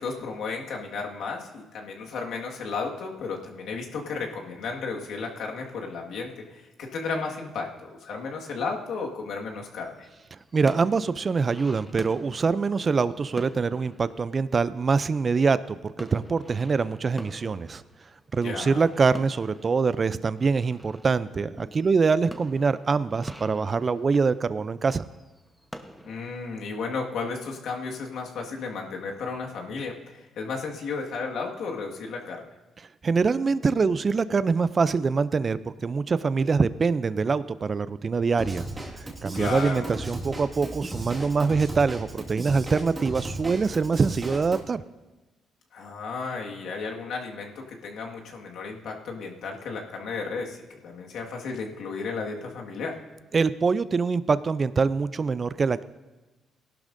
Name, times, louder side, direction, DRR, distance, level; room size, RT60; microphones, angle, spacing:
voice 1, 0.0-10.1 18.4-18.8 26.0-32.4 39.3-39.9 45.7-53.0, left 4 dB, 75° left, 0 dB, 1.7 m, -34 dB
sound 1, 9.5-15.7 15.9-26.6, equal, ahead, 0.9 m, -47 dB
voice 2, 10.5-17.8 18.3-25.0 33.0-38.7 39.2-44.8 53.3-55.8, right 4 dB, 35° right, 15 dB, 0.4 m, -24 dB
Drum kit / Drum, 38.4-44.6, right 2 dB, 20° right, 1.8 m, -36 dB
18.5 x 11.5 x 2.6 m, 1.1 s
cardioid pair, 90°, 0 cm